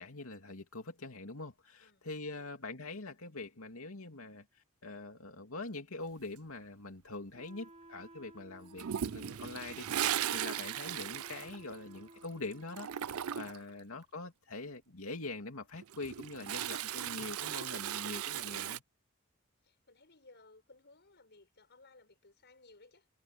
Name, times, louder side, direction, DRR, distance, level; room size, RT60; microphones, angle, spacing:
voice 1, 0.0-4.5 4.8-18.8, left 2 dB, 70° left, 2.8 m, -44 dB
Wind instrument woodwind instrument, 7.3-13.3, right 1 dB, 30° right, 1.3 m, -56 dB
Toilet flush, 8.8-12.3 12.5-13.7 15.7-18.8, right 10 dB, 80° right, 0.5 m, -37 dB
voice 2, 19.6-23.1, left 3 dB, 55° left, 7.0 m, -61 dB
head